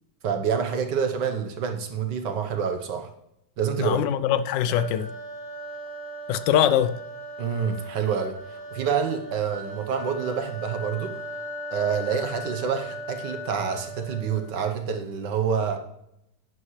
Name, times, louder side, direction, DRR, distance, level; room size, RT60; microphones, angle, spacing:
voice 1, 0.2-3.1 3.6-4.0 7.4-11.2 11.7-15.8, right 7 dB, 70° right, 1.7 m, -27 dB
voice 2, 3.8-5.1 6.3-7.0, left 10 dB, 85° left, 1.3 m, -22 dB
sound 1, 4.7-14.6, right 1 dB, 5° right, 2.7 m, -38 dB
11.5 x 9.6 x 3.2 m
omnidirectional pair, 1.9 m